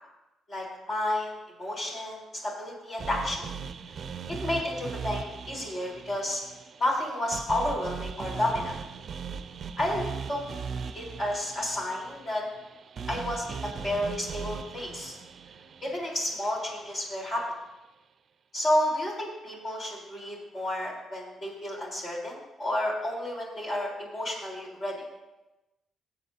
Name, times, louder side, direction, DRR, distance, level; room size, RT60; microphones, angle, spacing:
voice 1, 0.5-3.4 4.3-6.4 6.8-8.7 9.8-10.4 10.9-12.4 13.1-15.2 15.8-17.4 18.5-25.0, left 1 dB, 40° left, -2 dB, 3.9 m, -31 dB
sound 1, 3.0-17.2, right 6 dB, 50° right, 0.5 m, -39 dB
16.0 x 7.8 x 2.8 m, 1.0 s
cardioid pair, 90°, 0 cm